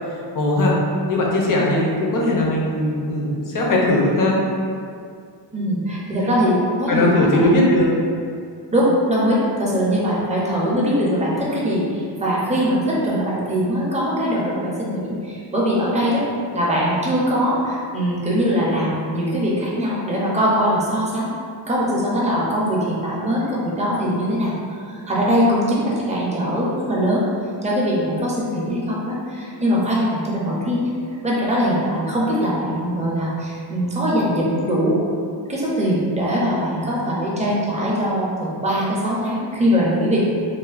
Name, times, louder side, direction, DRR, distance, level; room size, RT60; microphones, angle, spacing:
voice 1, 0.3-0.8 1.1-4.4 6.9-7.9, left 1 dB, 45° left, -2 dB, 0.5 m, -19 dB
voice 2, 5.5-7.6 8.7-16.2 16.5-21.3 21.6-27.3 27.6-30.8 31.2-35.0 35.5-40.2, equal, 15° right, -6 dB, 0.4 m, -21 dB
3.1 x 2.0 x 2.4 m, 2.3 s
wide cardioid pair, 150°, 45 cm